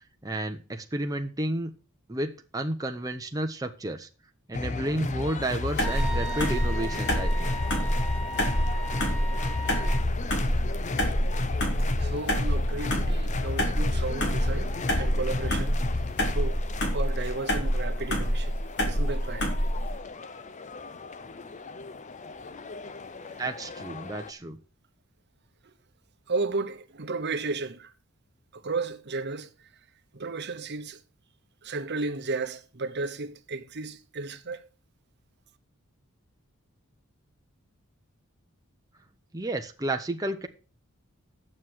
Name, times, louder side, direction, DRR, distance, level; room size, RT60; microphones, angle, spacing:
voice 1, 0.2-1.7 2.1-4.1 4.5-7.5 23.4-24.6 39.3-40.5, right 1 dB, 15° right, 0.8 m, -31 dB
sound 1, 4.5-24.3, left 3 dB, 35° left, 0.7 m, -34 dB
sound 2, 5.8-19.9, equal, 55° left, 3.5 m, -27 dB
Wind instrument woodwind instrument, 5.8-10.1, right 3 dB, 5° left, 3.4 m, -37 dB
voice 2, 12.0-15.8 16.3-16.6 16.9-18.6 18.9-19.5 23.3-23.4 25.6-25.7 26.3-27.9 28.5-29.5 30.1-31.0 31.6-34.7, right 3 dB, 55° right, 1.0 m, -33 dB
9.7 x 7.5 x 6.4 m
head